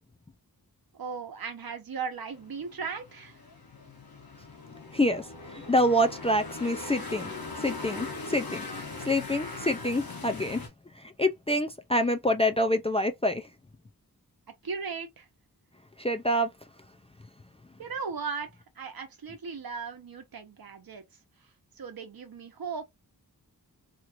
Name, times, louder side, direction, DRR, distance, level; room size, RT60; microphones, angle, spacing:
voice 1, 0.9-3.4 14.6-15.3 17.8-18.5 18.8-21.0 21.7-22.8, right 5 dB, 70° right, 0.9 m, -37 dB
sound 1, 2.3-10.7, left 3 dB, 65° left, 1.1 m, -40 dB
voice 2, 5.5-7.3 7.6-8.6 9.0-10.6 11.2-13.4 16.0-16.5, left 1 dB, 15° left, 0.3 m, -26 dB
2.9 x 2.5 x 2.9 m
wide cardioid pair, 105°, 37 cm